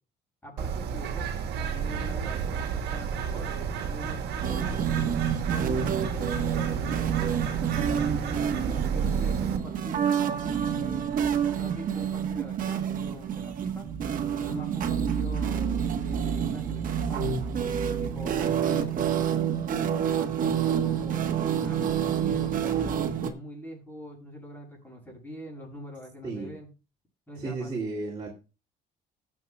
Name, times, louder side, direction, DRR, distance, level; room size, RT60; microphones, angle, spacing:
voice 1, 0.4-5.0 5.5-11.1 11.6-13.9 14.4-17.7 18.0-18.9 19.7-21.8 22.3-26.7 27.3-27.7, equal, 10° left, 0 dB, 7.0 m, -44 dB
Bird, 0.6-9.6, right 6 dB, 75° right, 1.6 m, -31 dB
sound 1, 4.4-23.3, right 8 dB, 55° right, 1.3 m, -28 dB
voice 2, 27.4-28.3, right 3 dB, 25° right, -1 dB, 2.8 m, -33 dB
20.5 x 7.7 x 2.3 m, 0.30 s
cardioid pair, 110°, 17 cm